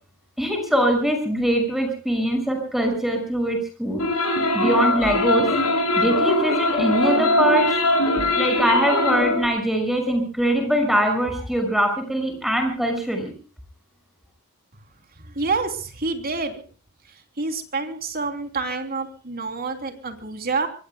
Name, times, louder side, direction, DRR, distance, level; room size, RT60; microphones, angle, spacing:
voice 1, 0.4-4.0 4.5-5.5 6.0-7.6 8.4-13.3, equal, ahead, 4 dB, 6.0 m, -22 dB
sound 1, 4.0-9.5, left 1 dB, 85° left, 6.8 m, -21 dB
voice 2, 15.2-16.6 17.4-20.7, right 3 dB, 45° right, 6 dB, 3.2 m, -27 dB
25.5 x 25.0 x 2.3 m, 0.38 s
head